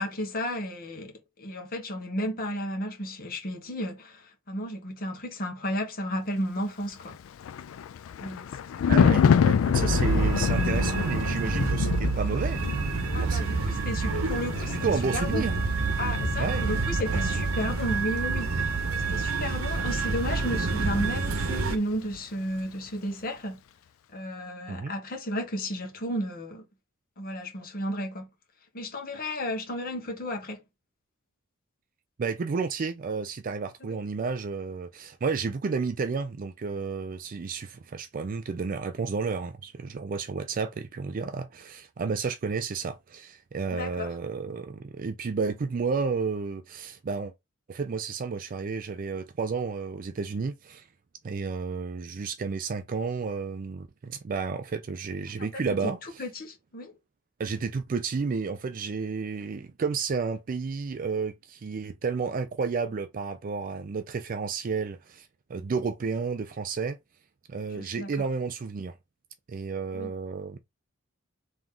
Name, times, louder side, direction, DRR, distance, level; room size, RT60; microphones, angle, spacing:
voice 1, 0.0-7.1 8.2-8.5 8.9-9.3 13.1-15.5 16.0-18.8 19.1-23.6 24.1-26.6 27.2-28.3 28.7-30.6 33.8-34.0 43.7-44.1 55.4-55.5 55.8-55.9 56.2-56.9 67.7-68.1 69.9-70.1, equal, 45° left, 1.2 m, -33 dB
Thunder, 7.0-21.6 21.9-22.2, left 7 dB, 70° left, 0.3 m, -28 dB
voice 2, 8.9-12.6 13.2-13.6 14.7-15.6 16.4-16.7 24.7-24.9 32.2-47.3 47.7-50.9 51.2-56.2 57.4-67.0 67.5-68.9 69.5-70.6, right 5 dB, 40° right, 0.4 m, -31 dB
sound 1, 9.7-21.8, right 4 dB, 90° right, 0.7 m, -28 dB
3.6 x 2.9 x 3.7 m
head